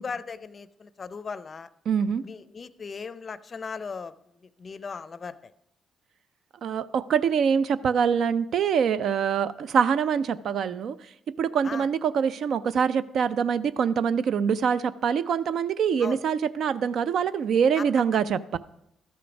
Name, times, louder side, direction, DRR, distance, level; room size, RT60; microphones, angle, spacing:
voice 1, 0.0-1.7 2.2-4.1 4.4-5.5 11.6-11.9 16.0-16.2 17.8-18.2, left 5 dB, 40° left, 15 dB, 0.5 m, -38 dB
voice 2, 1.9-2.2 6.6-11.0 11.4-18.6, right 7 dB, 65° right, 15 dB, 0.3 m, -24 dB
12.5 x 5.1 x 5.9 m, 0.78 s
cardioid pair, 90°, 0 cm